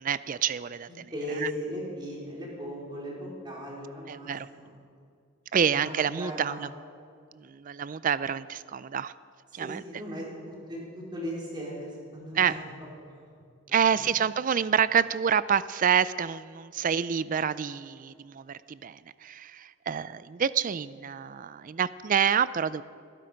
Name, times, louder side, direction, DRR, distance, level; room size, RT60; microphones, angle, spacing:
voice 1, 0.0-1.1 1.4-1.5 4.1-4.5 5.5-6.7 7.3-9.1 9.5-9.8 12.3-12.6 13.7-22.8, right 7 dB, 45° right, 17 dB, 0.4 m, -27 dB
voice 2, 0.9-4.7 5.6-6.7 9.6-12.9 13.7-14.1, equal, 25° right, -4 dB, 4.5 m, -38 dB
21.0 x 12.0 x 5.2 m, 2.2 s
head